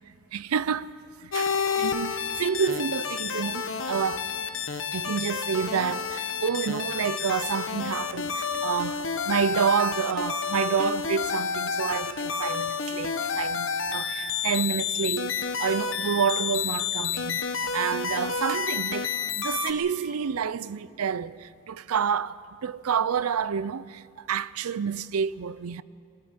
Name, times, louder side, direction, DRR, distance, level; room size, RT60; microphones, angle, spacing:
voice 1, 0.3-0.9 1.2-1.5 1.8-4.3 4.9-17.4 17.7-25.8, right 7 dB, 90° right, 0.5 m, -29 dB
sound 1, 1.3-19.7, left 6 dB, 60° left, 1.1 m, -30 dB
22.0 x 13.0 x 9.4 m
head